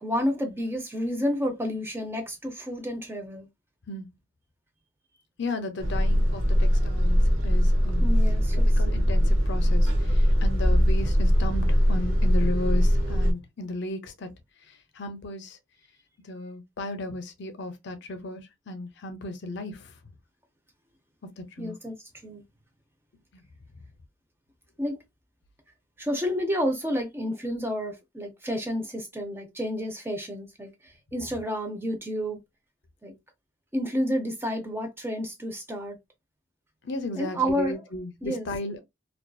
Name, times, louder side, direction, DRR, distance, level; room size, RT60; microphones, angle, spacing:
voice 1, 0.0-3.5 8.0-8.8 21.6-21.9 22.2-22.4 24.8-25.0 26.0-32.4 33.0-33.1 33.7-36.0 37.2-37.8 38.2-38.5, equal, 10° right, 0.5 m, -30 dB
voice 2, 5.4-8.1 8.5-14.3 14.9-15.6 16.2-18.4 18.7-19.9 21.4-21.8 23.3-23.4 36.8-38.8, left 2 dB, 60° left, 0.5 m, -35 dB
sound 1, 5.8-13.3, equal, 70° right, 0.7 m, -21 dB
2.6 x 2.3 x 2.2 m
head